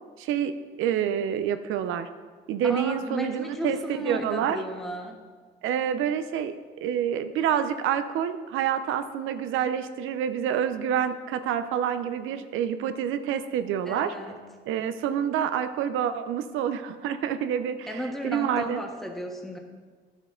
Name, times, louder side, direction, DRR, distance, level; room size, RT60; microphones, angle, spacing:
voice 1, 0.2-0.5 0.8-2.1 2.5-3.8 4.0-4.6 5.6-6.6 6.8-14.1 14.7-18.8, right 9 dB, 90° right, 10 dB, 0.6 m, -27 dB
voice 2, 2.6-5.2 13.8-14.4 17.9-19.6, equal, ahead, 1 dB, 1.4 m, -34 dB
11.0 x 6.3 x 3.8 m, 1.5 s
cardioid pair, 90°, 20 cm